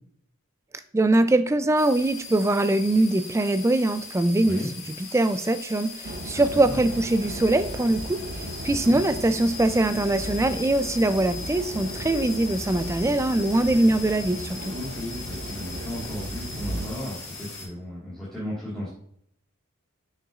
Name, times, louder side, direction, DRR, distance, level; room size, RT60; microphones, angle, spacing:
voice 1, 0.9-4.6 5.0-8.2 8.6-14.7, right 2 dB, 15° right, 10 dB, 0.3 m, -22 dB
sound 1, 1.8-17.7, left 4 dB, 75° left, 2.0 m, -39 dB
sound 2, 6.0-16.9, right 1 dB, 45° right, 0.8 m, -36 dB
voice 2, 6.2-6.8 8.7-9.0 14.7-18.9, left 1 dB, ahead, -10 dB, 1.7 m, -35 dB
7.0 x 5.7 x 2.4 m, 0.67 s
head